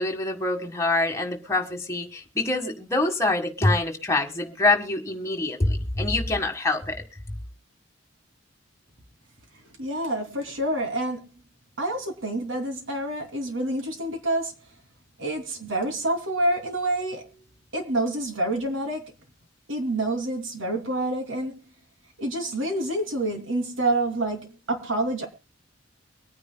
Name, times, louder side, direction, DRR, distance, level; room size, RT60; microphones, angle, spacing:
voice 1, 0.0-7.0, left 2 dB, 15° left, 1.6 m, -25 dB
voice 2, 9.8-11.2 11.8-14.5 15.2-17.3 17.7-19.0 19.7-21.5 22.2-25.3, right 1 dB, 90° right, 2.8 m, -27 dB
23.5 x 9.7 x 2.2 m
head